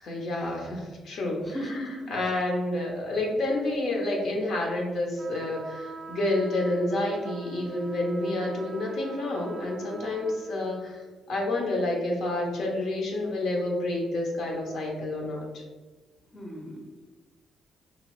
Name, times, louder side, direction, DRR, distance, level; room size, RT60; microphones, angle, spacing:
voice 1, 0.0-1.6 2.1-11.0 11.3-15.6, left 2 dB, 70° left, 0 dB, 0.7 m, -29 dB
voice 2, 1.4-2.3 16.3-16.9, equal, 15° left, 0 dB, 0.6 m, -37 dB
sound 1, 5.2-10.6, right 4 dB, 35° right, 0.4 m, -44 dB
2.8 x 2.4 x 3.0 m, 1.2 s
cardioid pair, 90°, 0 cm